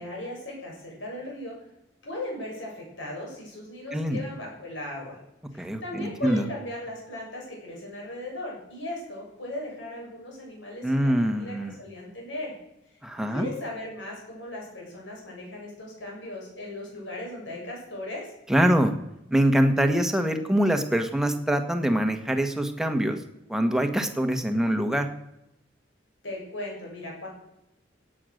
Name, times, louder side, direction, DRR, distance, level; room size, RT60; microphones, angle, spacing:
voice 1, 0.0-1.5 2.0-5.2 5.5-12.5 13.3-18.3 26.2-27.3, left 1 dB, 80° left, -2 dB, 7.5 m, -37 dB
voice 2, 3.9-4.2 5.6-6.5 10.8-11.8 13.0-13.5 18.5-18.9 19.3-23.2 23.5-25.1, equal, 5° right, 5 dB, 1.4 m, -24 dB
17.0 x 8.7 x 6.6 m, 0.87 s
head